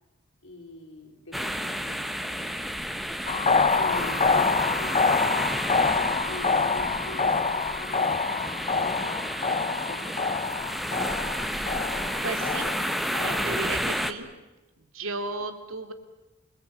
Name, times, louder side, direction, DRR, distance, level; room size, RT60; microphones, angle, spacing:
voice 1, 0.4-2.7 3.7-10.6, left 1 dB, 75° left, 5 dB, 3.8 m, -44 dB
sound 1, 1.3-14.1, equal, ahead, 1.2 m, -31 dB
sound 2, 3.3-13.4, left 4 dB, 30° left, 0.9 m, -26 dB
voice 2, 12.2-12.7 13.2-14.3 14.9-15.9, right 3 dB, 80° right, 8 dB, 2.9 m, -34 dB
28.0 x 20.5 x 9.0 m, 1.1 s
head